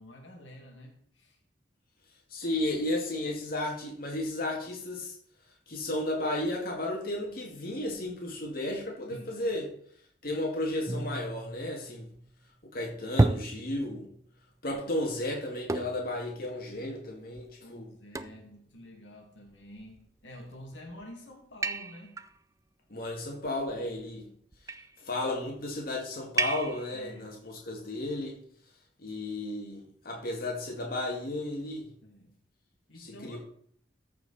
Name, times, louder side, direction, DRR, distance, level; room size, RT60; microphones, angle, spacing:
voice 1, 0.0-1.4 9.1-9.3 14.7-14.9 17.6-22.2 23.7-24.0 26.9-27.3 32.0-32.4 32.9-33.4, left 1 dB, 85° left, 0 dB, 2.2 m, -49 dB
voice 2, 2.3-5.1 5.7-9.7 10.2-12.1 12.7-14.1 14.6-17.9 22.9-24.3 25.0-28.4 29.0-31.9 33.0-33.4, left 1 dB, 50° left, -1 dB, 2.0 m, -33 dB
sound 1, 10.9-12.3 13.2-14.1 15.7-16.2 16.7-16.8 17.4-17.5 18.1-18.5 19.6-20.1 20.7-21.0 21.6-22.3 23.4-24.0 24.5-25.0 26.4-27.0, right 2 dB, 15° right, 0.4 m, -32 dB
14.5 x 5.0 x 4.2 m, 0.62 s
head